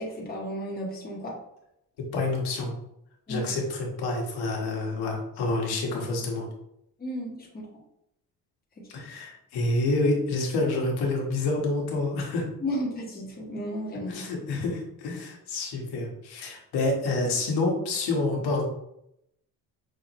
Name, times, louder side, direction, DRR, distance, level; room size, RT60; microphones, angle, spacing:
voice 1, 0.0-1.3 3.3-3.5 7.0-7.5 12.6-14.1, equal, 25° left, -3 dB, 1.4 m, -33 dB
voice 2, 2.1-2.7 3.3-6.5 8.9-12.5 14.1-18.7, left 2 dB, 80° left, 0 dB, 1.4 m, -28 dB
6.0 x 2.6 x 3.0 m, 0.78 s
cardioid pair, 115°, 38 cm